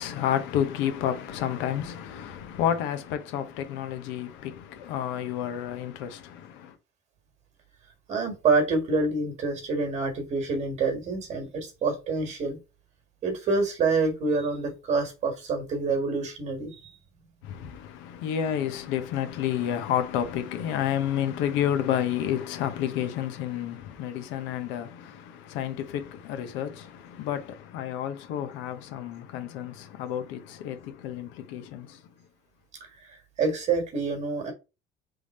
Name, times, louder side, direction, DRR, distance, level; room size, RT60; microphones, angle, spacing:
voice 1, 0.0-6.8 17.4-32.0, left 10 dB, 75° left, 1.0 m, -30 dB
voice 2, 8.1-12.6 13.2-16.9 33.4-34.5, right 4 dB, 35° right, 1.6 m, -27 dB
3.6 x 3.5 x 4.2 m
cardioid pair, 165°, 19 cm